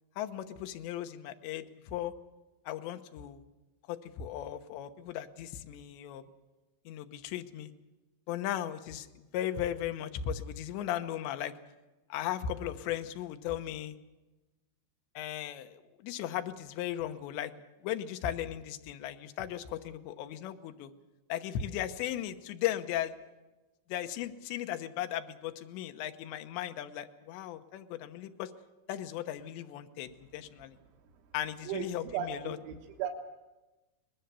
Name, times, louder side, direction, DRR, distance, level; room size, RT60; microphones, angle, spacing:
voice 1, 0.2-2.1 2.7-3.4 3.9-6.2 6.9-7.7 8.3-9.1 9.3-11.5 12.1-14.0 15.2-17.5 17.8-20.9 21.3-23.1 23.9-28.5 28.9-30.8 31.3-32.6, left 11 dB, 75° left, 8 dB, 3.2 m, -37 dB
voice 2, 31.7-33.1, right 8 dB, 85° right, 0 dB, 3.9 m, -36 dB
23.0 x 20.5 x 6.9 m, 1.1 s
omnidirectional pair, 5.2 m